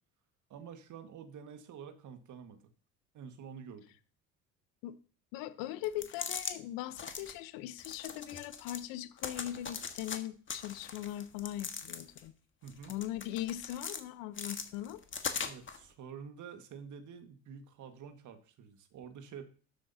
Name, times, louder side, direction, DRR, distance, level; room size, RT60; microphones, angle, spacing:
voice 1, 0.5-2.6 3.1-3.9 12.6-12.9 15.4-19.5, right 7 dB, 55° right, 8 dB, 1.7 m, -48 dB
voice 2, 5.3-12.3 12.9-15.0, left 13 dB, 70° left, 15 dB, 0.9 m, -40 dB
sound 1, 5.8-6.5 6.9-7.3 7.8-8.8 9.2-10.2 10.5-12.3 12.7-14.0 14.3-15.8, left 6 dB, 30° left, 1.5 m, -40 dB
12.5 x 7.9 x 2.8 m, 0.40 s
hypercardioid pair, 60°, 36 cm